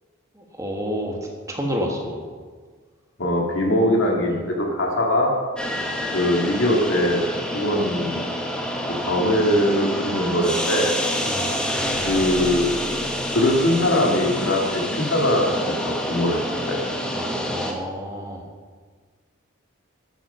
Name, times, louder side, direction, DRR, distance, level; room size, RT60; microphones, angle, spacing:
voice 1, 0.4-2.2 4.3-4.4 11.2-11.6 17.2-18.4, equal, 15° right, 1 dB, 1.5 m, -30 dB
voice 2, 3.2-5.3 6.1-7.2 7.5-8.2 8.9-10.9 12.0-12.8 13.3-16.4 16.7-16.8, left 1 dB, 65° left, 0 dB, 2.0 m, -21 dB
sound 1, 5.6-17.7, equal, 5° left, 1.2 m, -27 dB
11.5 x 9.1 x 5.5 m, 1.5 s
head